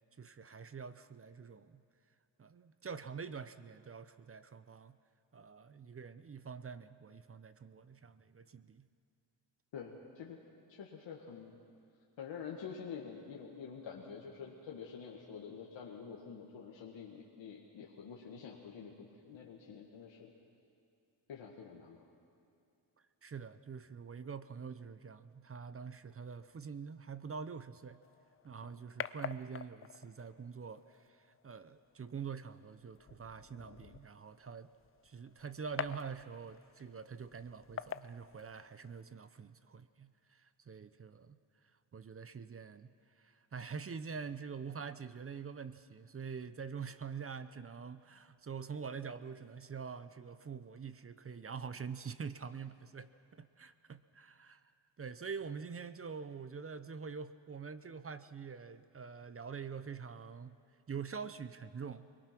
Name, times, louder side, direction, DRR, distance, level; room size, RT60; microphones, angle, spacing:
voice 1, 0.2-1.8 2.4-5.0 5.3-8.9 23.2-28.0 28.4-34.7 35.0-41.4 41.9-60.6 60.9-62.1, right 6 dB, 30° right, 13 dB, 0.6 m, -45 dB
voice 2, 9.7-10.4 10.7-11.6 12.2-20.3 21.3-22.1 28.6-28.8, left 6 dB, 85° left, -2 dB, 1.8 m, -47 dB
sound 1, 28.0-39.0, left 8 dB, 30° left, 0.4 m, -48 dB
23.0 x 21.0 x 6.0 m, 2.6 s
cardioid pair, 105°, 44 cm